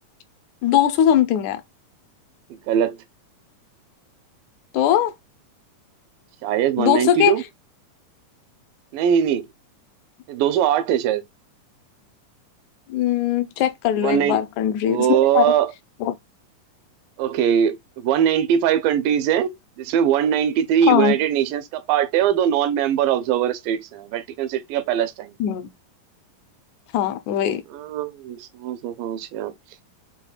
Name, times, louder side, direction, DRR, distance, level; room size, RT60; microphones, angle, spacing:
voice 1, 0.6-1.6 4.7-5.1 6.8-7.3 12.9-15.5 16.0-16.1 20.9-21.2 25.4-25.7 26.9-27.6, left 11 dB, 80° left, 1.8 m, -20 dB
voice 2, 2.7-3.0 6.4-7.4 8.9-9.5 10.3-11.2 14.0-14.4 14.9-15.7 17.2-25.4 27.7-29.5, right 9 dB, 90° right, 2.4 m, -21 dB
6.9 x 2.3 x 2.4 m
omnidirectional pair, 3.9 m